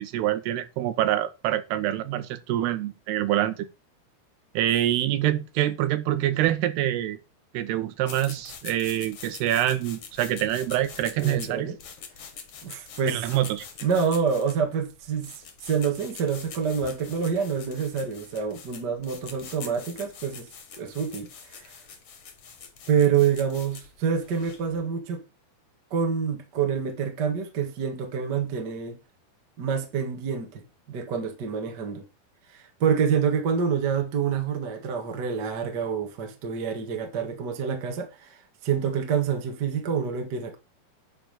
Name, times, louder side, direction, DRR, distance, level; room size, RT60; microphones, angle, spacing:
voice 1, 0.0-3.7 4.5-7.2 7.5-11.7 13.0-13.7, right 13 dB, 80° right, 3.0 m, -26 dB
sound 1, 8.0-24.7, left 6 dB, 50° left, 2.0 m, -44 dB
voice 2, 11.2-11.8 12.6-13.2 13.8-20.5 20.8-21.8 22.9-25.2 25.9-29.0 29.6-32.0 32.5-40.6, right 7 dB, 45° right, 1.4 m, -27 dB
10.5 x 4.9 x 6.7 m
omnidirectional pair, 4.7 m